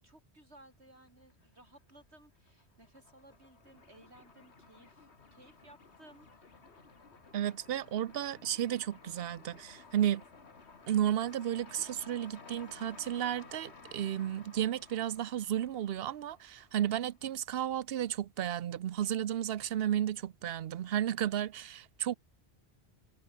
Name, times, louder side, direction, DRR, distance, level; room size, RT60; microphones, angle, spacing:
voice 1, 0.0-6.7, right 1 dB, 90° right, 7.6 m, -59 dB
sound 1, 1.1-1.8 2.1-17.3, left 4 dB, 90° left, 2.4 m, -56 dB
sound 2, 3.3-4.2 5.7-6.9 7.3-9.4 10.5-16.2, equal, 10° right, 7.1 m, -77 dB
sound 3, 3.6-14.5, left 4 dB, 65° left, 2.2 m, -63 dB
voice 2, 7.3-10.2 10.9-22.2, right 11 dB, 70° right, 0.9 m, -33 dB
omnidirectional pair, 1.1 m